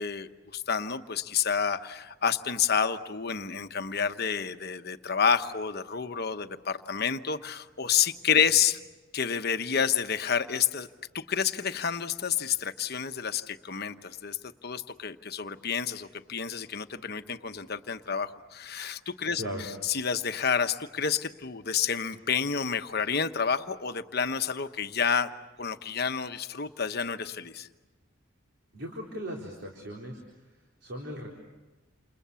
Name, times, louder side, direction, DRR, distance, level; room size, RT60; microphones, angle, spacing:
voice 1, 0.0-8.8 9.1-10.9 11.1-19.4 19.8-25.3 25.6-27.7, left 7 dB, 50° left, 9 dB, 1.1 m, -29 dB
voice 2, 28.7-31.3, equal, 55° right, -1 dB, 4.2 m, -38 dB
29.0 x 28.5 x 7.1 m, 1.2 s
head